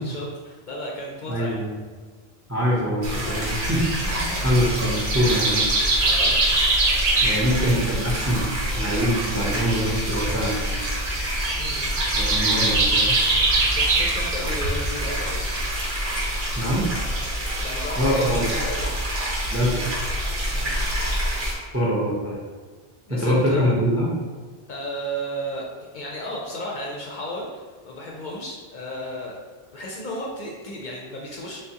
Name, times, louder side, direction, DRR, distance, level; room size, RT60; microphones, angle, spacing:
voice 1, 0.0-1.6 4.0-4.5 6.0-6.4 11.5-12.0 12.3-12.5 13.7-15.5 17.4-19.0 20.5-20.8 23.1-23.8 24.7-25.6 25.9-29.3 29.7-31.6, equal, 55° left, -2 dB, 0.6 m, -34 dB
voice 2, 1.3-1.7 2.5-3.9 4.4-5.6 7.2-8.5 8.7-10.8 12.1-13.2 16.5-16.9 18.0-18.5 19.5-20.0 21.7-22.4 23.1-24.1, equal, 20° right, -5 dB, 0.5 m, -24 dB
sound 1, 3.0-21.5, equal, 85° right, 1.3 m, -27 dB
sound 2, 3.6-15.7, right 2 dB, 55° right, 0.7 m, -24 dB
3.5 x 3.4 x 2.8 m, 1.5 s
omnidirectional pair, 1.0 m